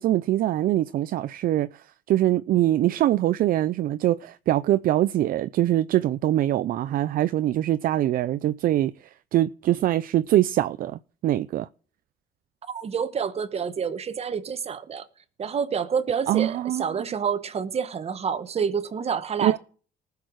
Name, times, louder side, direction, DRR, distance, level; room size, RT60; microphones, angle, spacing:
voice 1, 0.0-1.7 2.1-8.9 9.3-11.7 16.3-16.8 19.4-19.6, right 13 dB, 60° right, 0.5 m, -23 dB
voice 2, 12.7-15.1 15.4-19.6, right 6 dB, 40° right, 1.3 m, -28 dB
19.5 x 6.8 x 4.6 m
cardioid pair, 110°, 17 cm